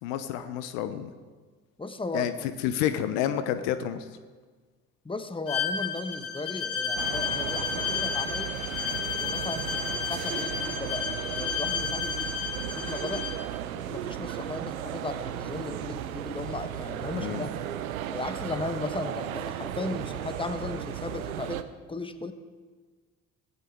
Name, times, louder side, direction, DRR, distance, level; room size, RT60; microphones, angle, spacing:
voice 1, 0.0-1.1 2.1-4.0 17.1-17.5, left 10 dB, 70° left, 11 dB, 0.9 m, -29 dB
voice 2, 1.8-2.3 5.0-8.5 9.2-13.3 13.7-17.7 18.1-21.6 21.9-22.3, left 3 dB, 10° left, 9 dB, 1.3 m, -36 dB
Bowed string instrument, 5.5-13.4, left 7 dB, 50° left, 3.9 m, -32 dB
sound 1, 7.0-21.6, right 11 dB, 80° right, 0.7 m, -35 dB
17.0 x 16.0 x 3.6 m, 1.4 s
figure-of-eight pair, 50°, 41 cm